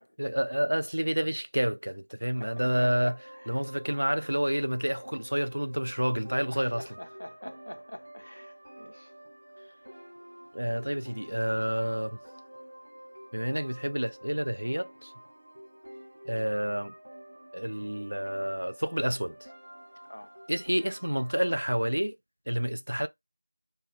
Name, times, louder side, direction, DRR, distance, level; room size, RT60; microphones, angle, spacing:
voice 1, 0.2-3.1 3.5-6.8 10.5-12.2 13.3-15.1 16.3-16.9 17.5-19.4 20.5-22.2 22.5-23.1, equal, 65° right, 0.4 m, -29 dB
sound 1, 2.3-21.9, right 1 dB, 30° right, 0.9 m, -49 dB
voice 2, 2.4-3.6 6.5-9.1 10.6-10.9 20.1-20.4, left 1 dB, 60° left, 0.4 m, -46 dB
2.3 x 2.2 x 3.2 m
figure-of-eight pair, 180°, 0 cm